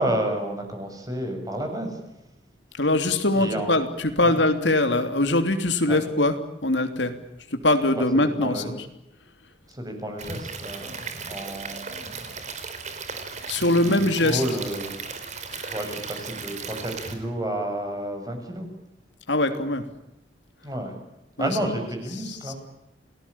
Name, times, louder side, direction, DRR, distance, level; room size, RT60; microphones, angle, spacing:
voice 1, 0.0-2.0 3.3-3.8 4.2-4.4 5.9-6.0 8.0-8.7 9.7-12.3 13.8-15.0 15.7-18.7 20.6-21.0 21.4-22.6, right 1 dB, 20° right, 5 dB, 7.1 m, -31 dB
voice 2, 2.8-6.3 6.6-7.1 7.5-8.9 13.5-14.4 15.5-15.7 19.3-19.8 21.4-21.5 22.3-22.5, left 2 dB, 75° left, 7 dB, 3.1 m, -22 dB
Stream / Liquid, 10.2-17.2, right 5 dB, 40° right, 4.3 m, -36 dB
30.0 x 19.0 x 8.8 m, 0.90 s
head